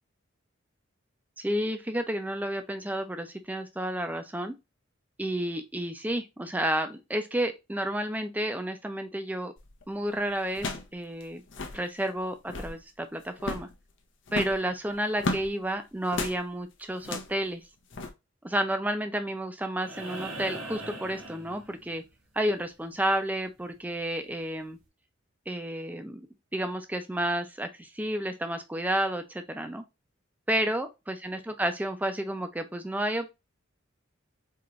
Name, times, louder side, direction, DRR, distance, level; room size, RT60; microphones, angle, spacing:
voice 1, 1.4-4.5 5.2-9.5 9.9-11.4 11.7-13.7 14.3-17.6 18.4-22.0 22.3-24.8 25.5-26.2 26.5-29.8 30.5-33.3, right 1 dB, 10° right, 0.5 m, -31 dB
sound 1, 9.6-9.8 10.5-10.9 11.2-11.3 11.5-11.8 12.3-12.8 13.4-13.7 14.3-15.5 16.1-16.4 17.0-17.4 17.9-18.1, left 2 dB, 60° left, 0.7 m, -33 dB
sound 2, 19.8-22.1 23.9-24.0, right 2 dB, 90° right, 1.5 m, -40 dB
4.5 x 3.0 x 2.5 m
head